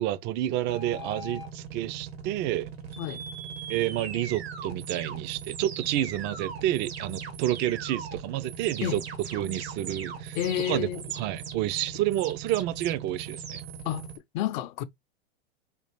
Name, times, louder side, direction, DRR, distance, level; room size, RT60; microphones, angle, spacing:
voice 1, 0.0-2.7 3.7-9.0 9.3-10.9 11.1-13.6, right 13 dB, 35° right, 0.5 m, -29 dB
sound 1, 0.6-14.2, right 6 dB, 80° right, 1.5 m, -39 dB
voice 2, 10.3-11.0 13.8-14.1 14.3-14.8, left 12 dB, 50° left, 0.6 m, -30 dB
5.3 x 2.4 x 3.1 m
hypercardioid pair, 115°, 31 cm